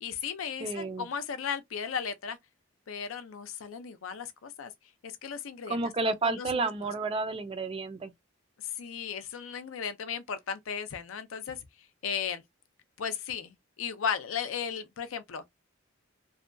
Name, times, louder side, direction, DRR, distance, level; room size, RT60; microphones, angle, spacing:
voice 1, 0.0-2.4 2.9-4.7 5.0-6.9 8.6-11.6 12.0-12.4 13.0-15.4, left 7 dB, 80° left, 0.5 m, -36 dB
voice 2, 0.6-1.1 5.7-8.1, right 3 dB, 25° right, 0.4 m, -31 dB
2.6 x 2.2 x 2.5 m
head